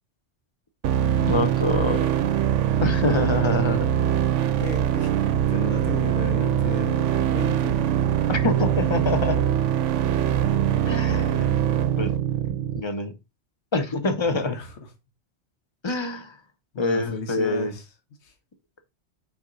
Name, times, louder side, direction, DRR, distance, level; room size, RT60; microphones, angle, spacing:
sound 1, 0.8-12.8, right 10 dB, 90° right, 0.9 m, -23 dB
voice 1, 1.1-2.1 2.8-3.9 8.3-9.4 10.9-11.6 12.0-12.1 12.5-13.1 13.7-14.5 15.8-16.4 16.8-17.7, left 2 dB, 25° left, 0.8 m, -26 dB
voice 2, 4.6-7.8 13.9-14.9 16.7-17.9 18.2-18.3, left 3 dB, 65° left, 1.5 m, -34 dB
6.1 x 4.9 x 3.9 m
omnidirectional pair, 1.2 m